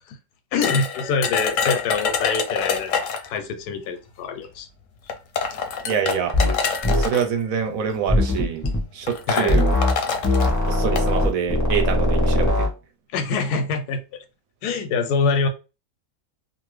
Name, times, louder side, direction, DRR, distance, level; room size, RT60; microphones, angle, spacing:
voice 1, 0.5-4.7 9.3-9.6 13.1-14.2 14.6-15.5, left 4 dB, 90° left, 1.2 m, -25 dB
sound 1, 0.6-3.4 4.4-4.5 5.1-7.2 8.1-8.4 8.7-8.8 9.1-11.1, left 6 dB, 65° left, 0.9 m, -26 dB
voice 2, 5.9-6.3 6.9-8.6 8.9-9.7 10.7-12.7, right 7 dB, 70° right, 1.0 m, -25 dB
sound 2, 6.3-6.6 6.8-7.1 8.1-8.8 9.5-10.0 10.2-12.7, left 1 dB, 20° left, 0.5 m, -20 dB
2.6 x 2.6 x 3.1 m
omnidirectional pair, 1.6 m